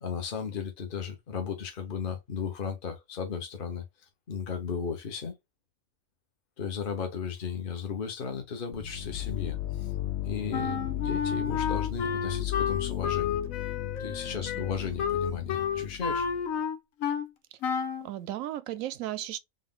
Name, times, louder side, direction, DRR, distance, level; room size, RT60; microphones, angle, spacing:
voice 1, 0.0-3.8 4.3-5.4 6.6-9.9 10.2-13.4 14.0-16.3, left 6 dB, 45° left, 1.1 m, -35 dB
sound 1, 8.7-16.4, left 12 dB, 65° left, 0.7 m, -35 dB
Wind instrument woodwind instrument, 10.5-17.3 17.6-18.1, left 7 dB, 90° left, 1.1 m, -31 dB
voice 2, 18.0-19.4, right 13 dB, 90° right, 1.0 m, -35 dB
3.9 x 2.5 x 3.6 m
omnidirectional pair, 1.4 m